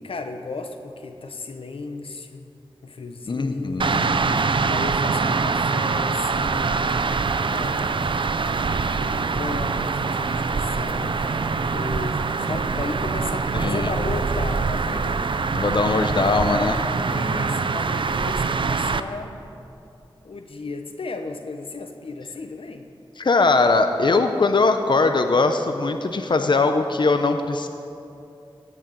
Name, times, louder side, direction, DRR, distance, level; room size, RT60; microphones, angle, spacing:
voice 1, 0.0-2.5 2.8-4.0 4.3-7.2 7.5-8.5 8.9-15.2 17.0-19.4 20.2-22.9, left 3 dB, 90° left, 7 dB, 1.0 m, -35 dB
voice 2, 3.3-4.5 13.5-13.9 15.5-16.9 23.2-27.7, left 3 dB, 55° left, 7 dB, 0.7 m, -21 dB
sound 1, 3.8-19.0, right 4 dB, 65° right, 0.6 m, -24 dB
17.0 x 6.5 x 9.3 m, 2.7 s
wide cardioid pair, 65°, 9 cm